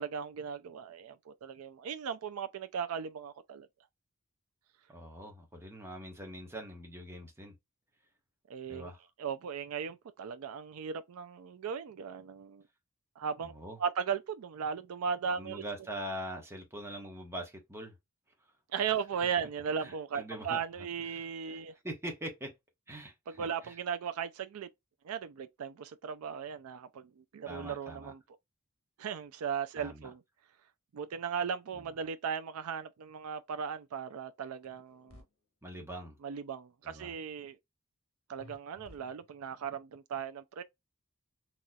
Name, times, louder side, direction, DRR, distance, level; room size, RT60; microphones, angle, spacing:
voice 1, 0.0-3.7 8.5-8.9 9.2-12.6 13.2-13.5 13.8-15.6 18.7-21.7 23.3-24.7 25.0-28.2 29.0-30.2 30.9-35.2 36.2-37.6 38.3-40.6, right 7 dB, 75° right, 0.4 m, -37 dB
voice 2, 4.9-7.5 8.7-9.0 13.4-13.8 15.3-17.9 19.8-20.6 21.5-21.6 21.8-22.5 22.9-23.7 27.5-28.1 29.8-30.1 31.7-31.9 35.6-36.2 36.8-37.1, right 1 dB, 10° right, 1.0 m, -43 dB
sound 1, 34.6-35.2 38.4-39.6, left 1 dB, 70° left, 1.1 m, -56 dB
4.0 x 3.0 x 2.3 m
head